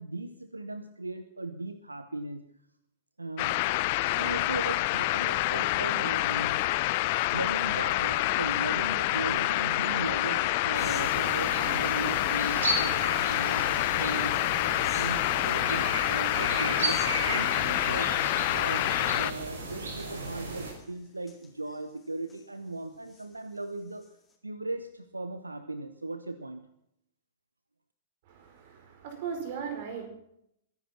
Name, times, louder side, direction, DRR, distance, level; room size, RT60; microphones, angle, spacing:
voice 1, 0.0-2.5 3.2-3.6 4.1-6.7 7.3-13.7 14.0-14.4 14.9-18.1 18.5-24.1 24.4-26.7, right 2 dB, 85° right, 11 dB, 1.0 m, -37 dB
sound 1, 3.4-19.3, left 18 dB, 45° left, 0.7 m, -27 dB
sound 2, 8.4-9.3 9.7-18.5 18.9-19.0 19.3-19.4 19.9-22.4 22.9-24.3, left 4 dB, 15° left, 3.9 m, -48 dB
sound 3, 10.7-20.7, right 2 dB, 65° right, 5.3 m, -35 dB
voice 2, 28.3-30.1, right 6 dB, 50° right, 6 dB, 4.8 m, -37 dB
22.5 x 10.5 x 5.9 m, 0.76 s
figure-of-eight pair, 105°, 0 cm